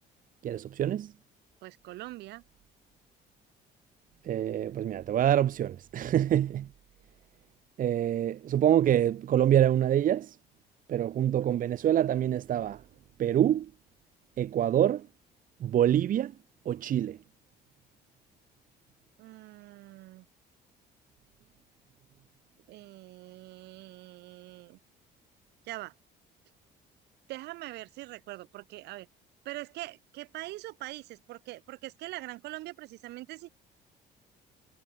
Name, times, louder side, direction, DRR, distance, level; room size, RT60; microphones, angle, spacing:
voice 1, 0.4-1.1 4.2-6.7 7.8-10.4 10.9-12.8 13.2-13.7 14.4-15.1 15.6-16.3 16.6-17.2, right 11 dB, 55° right, 1.2 m, -26 dB
voice 2, 1.6-2.4 11.4-11.5 19.2-20.2 22.7-24.8 25.6-25.9 27.3-29.1 29.4-33.5, right 18 dB, 85° right, 4.6 m, -43 dB
cardioid pair, 110°, 17 cm